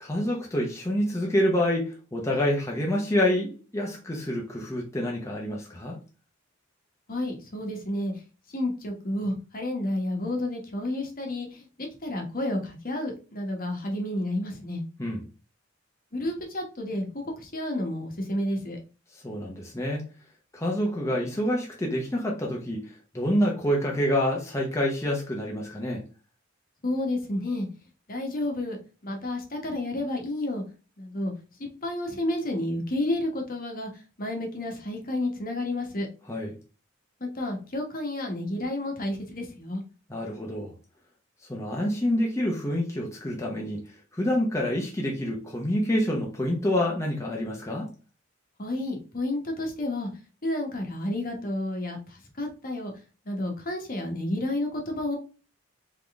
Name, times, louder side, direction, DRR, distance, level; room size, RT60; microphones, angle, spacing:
voice 1, 0.0-6.0 15.0-15.2 19.1-20.1 20.5-26.0 36.3-36.6 40.1-40.7 41.5-43.8 44.1-47.9, left 1 dB, 15° left, 0.8 m, -27 dB
voice 2, 7.1-8.1 8.5-14.8 16.1-18.8 26.8-27.7 28.1-28.8 29.0-30.6 31.0-31.3 31.6-36.1 37.2-39.8 48.6-50.1 50.4-52.9 53.2-55.2, left 1 dB, 45° left, 1.2 m, -31 dB
3.9 x 3.7 x 3.5 m
head